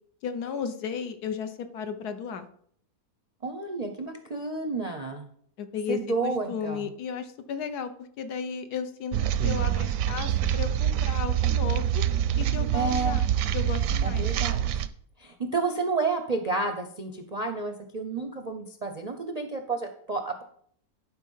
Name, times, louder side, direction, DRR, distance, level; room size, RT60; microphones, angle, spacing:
voice 1, 0.2-2.5 5.6-12.0 12.4-13.3 13.5-14.3, left 6 dB, 75° left, 9 dB, 1.4 m, -34 dB
voice 2, 3.4-5.3 5.9-6.8 12.7-13.2 14.0-14.7 15.2-20.4, right 3 dB, 45° right, 5 dB, 0.5 m, -30 dB
sound 1, 9.1-14.9, right 10 dB, 70° right, 0.8 m, -26 dB
11.0 x 4.7 x 5.5 m, 0.63 s
omnidirectional pair, 1.7 m